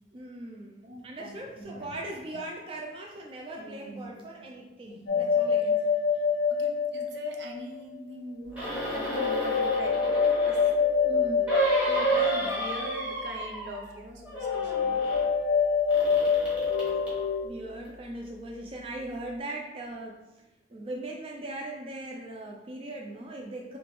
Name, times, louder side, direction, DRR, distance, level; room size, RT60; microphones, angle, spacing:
voice 1, 0.1-5.9 11.0-11.5 17.4-20.4 20.7-23.8, right 1 dB, 30° right, 0 dB, 0.3 m, -39 dB
voice 2, 0.8-2.0 2.3-2.5 3.6-4.6 4.8-5.5 6.1-10.0 10.4-10.7 11.9-15.1, equal, 70° right, 1 dB, 0.6 m, -42 dB
sound 1, 5.1-7.7 9.1-13.0 14.4-17.5, left 6 dB, 75° left, 0.5 m, -26 dB
sound 2, 8.5-10.8 11.5-14.0 14.2-15.2 15.9-17.2 17.8-17.9, right 2 dB, 10° right, 1.0 m, -31 dB
3.4 x 2.9 x 3.0 m, 1.0 s
head